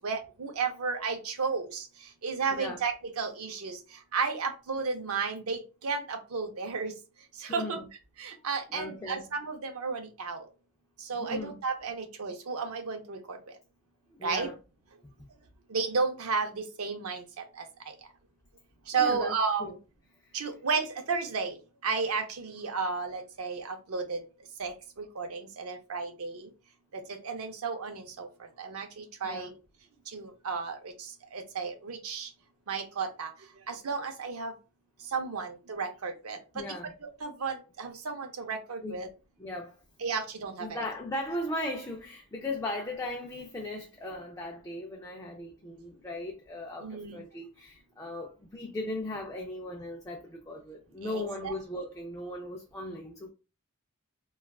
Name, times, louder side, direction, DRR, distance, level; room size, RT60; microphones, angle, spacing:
voice 1, 0.0-1.9 2.2-3.8 4.1-6.9 7.4-7.8 8.2-10.4 11.1-13.4 14.2-14.5 15.7-17.2 18.9-19.7 20.3-21.6 21.8-24.2 24.6-26.5 27.1-28.3 28.6-29.5 30.1-30.8 31.3-32.3 32.7-33.3 33.7-34.5 35.1-36.6 37.0-39.1 40.0-40.8 46.8-47.2 51.0-51.5 51.8-51.9, right 5 dB, 75° right, 0.6 m, -33 dB
voice 2, 7.5-7.9 8.7-9.3 11.1-11.6 14.2-14.6 18.9-19.8 20.2-20.5 29.2-29.5 36.5-36.9 38.8-39.0 39.4-39.8 40.6-53.3, left 1 dB, 15° left, 0.4 m, -38 dB
3.4 x 2.3 x 2.3 m
head